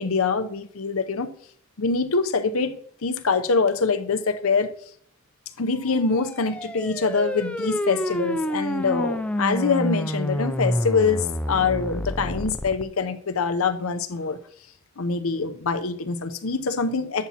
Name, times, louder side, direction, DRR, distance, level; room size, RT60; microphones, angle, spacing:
voice 1, 0.0-1.3 1.8-4.7 5.6-14.4 15.0-17.3, left 4 dB, 85° left, 0.7 m, -24 dB
sound 1, 5.9-12.8, left 1 dB, 5° left, 0.4 m, -28 dB
11.0 x 7.2 x 2.9 m
head